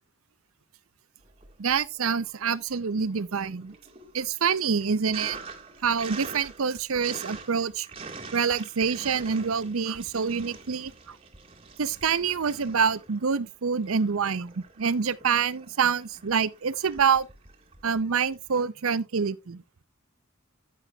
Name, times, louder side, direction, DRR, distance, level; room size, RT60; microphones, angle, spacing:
Sink (filling or washing), 1.3-2.2 2.5-18.6, right 4 dB, 25° right, 1.7 m, -45 dB
voice 1, 1.6-3.7 4.1-5.4 5.8-7.9 8.3-11.2 11.8-17.3 17.8-19.6, right 6 dB, 80° right, 0.6 m, -26 dB
10.0 x 9.8 x 2.3 m
head